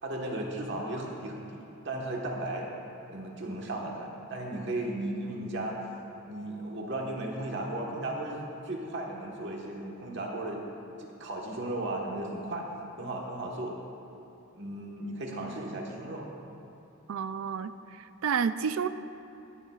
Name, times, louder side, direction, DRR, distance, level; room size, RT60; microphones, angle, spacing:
voice 1, 0.0-2.7 3.1-5.8 6.2-10.7 11.0-12.7 13.0-13.7 14.5-16.3, right 1 dB, 60° right, -1 dB, 1.4 m, -35 dB
voice 2, 17.1-17.7 18.2-18.9, right 7 dB, 80° right, 13 dB, 0.4 m, -29 dB
17.0 x 10.0 x 2.4 m, 2.9 s
head